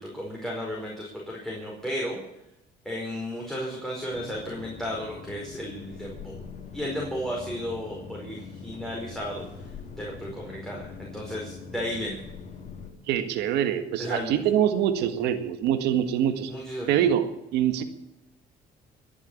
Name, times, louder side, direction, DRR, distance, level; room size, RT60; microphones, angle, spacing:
voice 1, 0.0-2.2 2.8-6.4 6.7-9.5 10.0-12.2 14.0-14.4 16.5-17.1, equal, ahead, -3 dB, 4.8 m, -34 dB
sound 1, 4.1-12.9, left 5 dB, 45° left, 3.3 m, -43 dB
voice 2, 13.1-16.5 16.9-17.8, right 10 dB, 90° right, 9 dB, 1.8 m, -24 dB
22.0 x 7.4 x 8.7 m, 0.88 s
cardioid pair, 110°, 17 cm